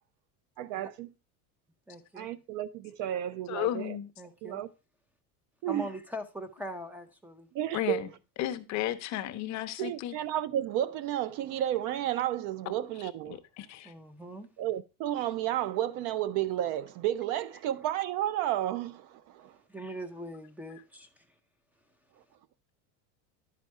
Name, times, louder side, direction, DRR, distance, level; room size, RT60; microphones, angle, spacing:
voice 1, 0.6-1.1 2.1-4.0 4.4-4.7 5.6-5.9 7.5-8.0 9.8-13.4 14.6-19.6, right 12 dB, 50° right, 0.5 m, -32 dB
voice 2, 1.9-2.3 4.2-4.6 5.7-7.5 13.8-14.5 19.7-21.4, equal, 5° right, 0.6 m, -42 dB
voice 3, 3.5-4.1 7.7-8.1 8.4-10.1 13.6-13.9, left 13 dB, 40° left, 0.7 m, -33 dB
10.5 x 4.2 x 4.5 m
supercardioid pair, 140°, 42 cm